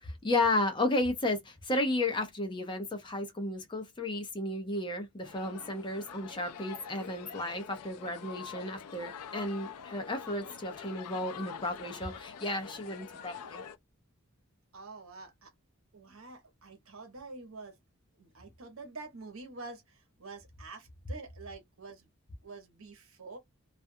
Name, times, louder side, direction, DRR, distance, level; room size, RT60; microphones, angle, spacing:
voice 1, 0.0-13.6, left 2 dB, 20° left, 0.6 m, -33 dB
sound 1, 5.2-13.8, left 7 dB, 85° left, 0.4 m, -46 dB
voice 2, 14.7-15.5 15.9-17.8 18.2-22.1 22.4-23.4, right 3 dB, 65° right, 1.0 m, -47 dB
2.4 x 2.2 x 2.6 m
head